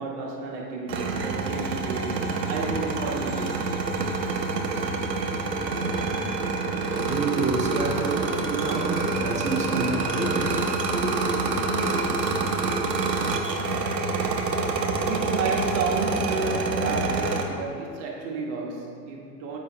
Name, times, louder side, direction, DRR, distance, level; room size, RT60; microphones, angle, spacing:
voice 1, 0.0-3.6 15.0-19.6, right 4 dB, 45° right, 1.3 m, -31 dB
sound 1, 0.9-17.4, right 3 dB, 80° right, 1.1 m, -27 dB
voice 2, 6.3-11.1, right 3 dB, 15° right, 0.7 m, -30 dB
7.5 x 5.1 x 4.4 m
hypercardioid pair, 105°, 49 cm